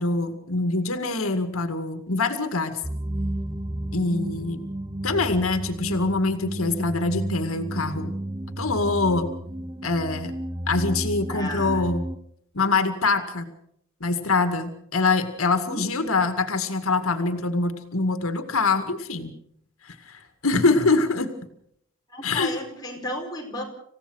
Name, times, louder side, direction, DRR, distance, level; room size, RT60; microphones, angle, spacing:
voice 1, 0.0-2.8 3.9-4.6 5.0-8.1 8.6-9.3 9.8-10.3 10.7-12.1 12.5-13.5 14.0-19.3 19.8-21.3 22.2-22.5, left 3 dB, 90° left, 8 dB, 2.1 m, -24 dB
sound 1, 2.8-12.2, right 1 dB, 20° right, 0.7 m, -32 dB
voice 2, 11.0-11.9 15.7-15.8 22.1-23.6, left 1 dB, 20° left, 0 dB, 4.9 m, -34 dB
27.0 x 16.5 x 6.4 m, 0.69 s
head